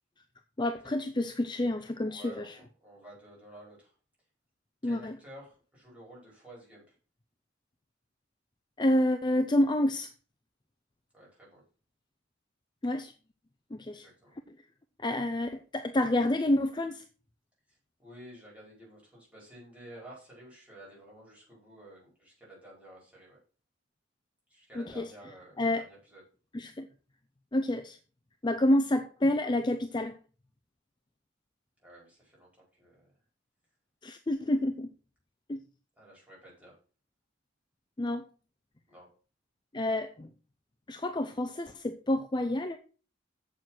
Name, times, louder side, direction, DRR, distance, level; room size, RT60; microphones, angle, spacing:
voice 1, 0.6-2.5 4.8-5.1 8.8-10.1 12.8-13.1 13.7-14.1 15.0-17.0 24.8-25.1 25.6-25.8 26.5-26.9 27.5-28.0 28.4-30.2 34.0-34.9 35.5-35.6 38.0-38.2 39.7-40.3 40.9-42.8, left 1 dB, 25° left, 8 dB, 0.6 m, -28 dB
voice 2, 2.0-3.9 4.8-6.9 11.1-11.6 13.9-14.3 17.7-23.4 24.5-26.2 31.8-33.1 36.0-36.8 38.9-39.1, right 1 dB, 5° right, -5 dB, 5.2 m, -52 dB
7.8 x 6.9 x 6.0 m, 0.37 s
head